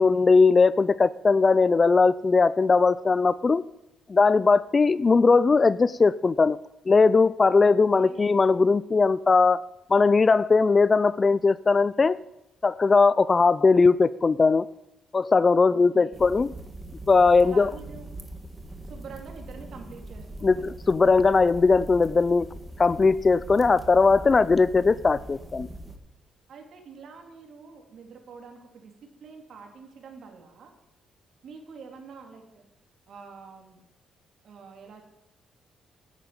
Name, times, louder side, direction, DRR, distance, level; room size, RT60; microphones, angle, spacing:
voice 1, 0.0-3.6 4.1-6.6 6.9-9.6 9.9-12.2 12.6-14.7 15.1-16.5 17.1-17.7 20.4-22.5 22.8-25.7, left 4 dB, 30° left, 17 dB, 0.4 m, -19 dB
voice 2, 7.7-8.3 15.6-16.3 17.4-18.1 18.8-20.7 26.5-28.9 29.2-30.7 31.4-32.6 33.1-33.8 34.4-35.0, right 5 dB, 65° right, 3 dB, 3.2 m, -46 dB
sound 1, 16.1-26.0, right 1 dB, 15° right, 1.7 m, -42 dB
11.0 x 9.1 x 8.8 m, 0.89 s
cardioid pair, 90°, 0 cm